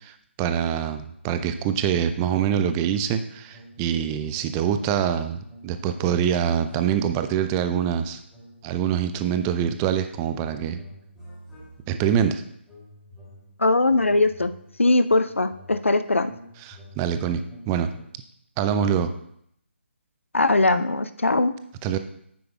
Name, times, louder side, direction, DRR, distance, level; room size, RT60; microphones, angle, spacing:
voice 1, 0.0-8.2 8.6-10.8 11.9-12.4 16.7-17.9 18.6-19.1 21.8-22.0, right 9 dB, 15° right, 9 dB, 0.4 m, -25 dB
sound 1, 3.0-4.0 4.2-7.3 7.8-8.7 9.0-12.1 12.6-18.0, equal, 5° left, 2.9 m, -48 dB
voice 2, 13.6-14.5 14.8-16.3 20.3-21.5, left 2 dB, 80° left, 12 dB, 0.5 m, -20 dB
9.4 x 7.8 x 2.4 m, 0.71 s
figure-of-eight pair, 145°, 7 cm